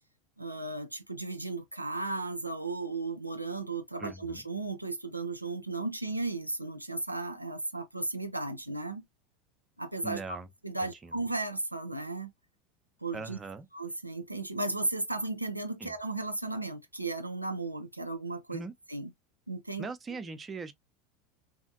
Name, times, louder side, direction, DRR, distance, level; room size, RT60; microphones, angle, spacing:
voice 1, 0.4-9.0 9.8-10.2 10.6-12.3 13.0-13.4 13.7-18.6 18.9-19.1 19.5-19.9, right 2 dB, 90° right, 0.3 m, -35 dB
voice 2, 4.0-4.4 10.0-10.5 10.8-11.2 13.1-13.7 15.8-15.9 18.5-18.7 19.8-20.7, right 4 dB, 20° right, 0.5 m, -40 dB
2.8 x 2.5 x 2.5 m
figure-of-eight pair, 80°, 0 cm